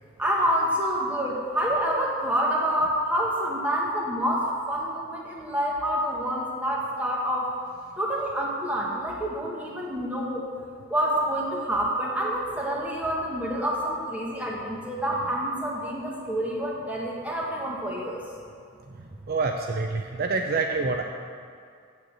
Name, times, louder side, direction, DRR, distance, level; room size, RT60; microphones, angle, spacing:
voice 1, 0.2-7.5 8.0-10.5 10.9-18.2, equal, 5° right, -4 dB, 1.5 m, -27 dB
voice 2, 19.3-21.0, right 3 dB, 45° right, 3 dB, 0.5 m, -26 dB
7.7 x 6.7 x 7.8 m, 2.3 s
head